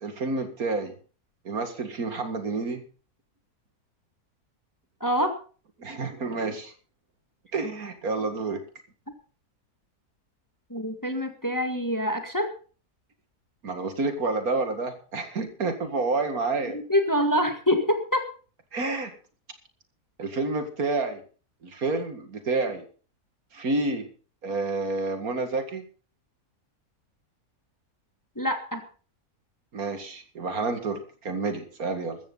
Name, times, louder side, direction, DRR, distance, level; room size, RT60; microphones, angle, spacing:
voice 1, 0.0-0.9 1.4-2.8 5.8-6.7 7.5-8.6 13.6-16.8 18.7-19.1 20.2-21.2 21.6-22.8 23.5-24.1 24.4-25.8 29.7-32.2, right 3 dB, 70° right, 7 dB, 2.5 m, -29 dB
voice 2, 5.0-5.3 10.7-12.5 16.7-18.3 28.4-28.8, equal, 15° left, 6 dB, 1.8 m, -25 dB
15.0 x 14.0 x 4.0 m, 0.38 s
omnidirectional pair, 1.6 m